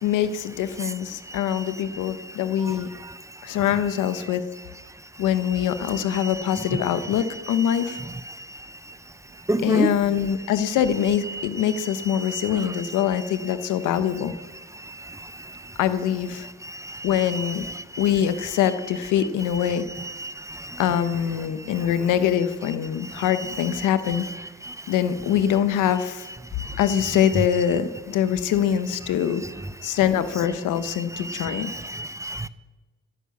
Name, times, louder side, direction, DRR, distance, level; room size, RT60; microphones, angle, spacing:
voice 1, 0.0-2.9 3.4-4.4 5.2-8.0 9.6-14.3 15.8-16.5 17.0-17.6 18.0-19.8 20.8-24.2 24.9-26.3 26.8-29.4 29.8-31.7, left 9 dB, 90° left, 1.1 m, -23 dB
voice 2, 9.5-9.9 20.2-20.6 31.3-32.5, right 2 dB, 10° right, 0.6 m, -28 dB
15.0 x 9.9 x 7.1 m
cardioid pair, 90°, 30 cm